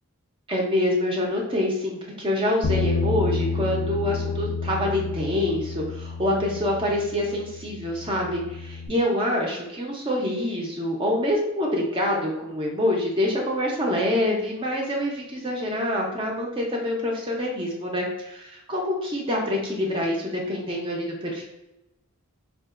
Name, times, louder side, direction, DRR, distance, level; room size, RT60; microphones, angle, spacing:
voice 1, 0.5-21.4, left 1 dB, 25° right, -1 dB, 0.4 m, -26 dB
Bass guitar, 2.6-8.9, left 4 dB, 50° left, 0.3 m, -30 dB
3.6 x 2.4 x 2.4 m, 0.90 s
head